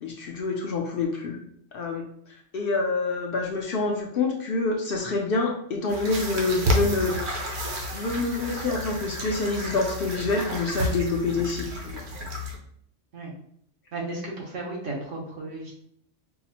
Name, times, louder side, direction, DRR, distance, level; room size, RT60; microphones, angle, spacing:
voice 1, 0.0-1.4 1.7-7.3 7.9-12.0, left 3 dB, 60° left, 1 dB, 0.6 m, -27 dB
sound 1, 5.9-12.6, equal, 65° right, 0.9 m, -30 dB
voice 2, 13.9-15.8, right 2 dB, 80° right, -2 dB, 1.3 m, -34 dB
4.5 x 2.0 x 2.8 m, 0.68 s
omnidirectional pair, 1.3 m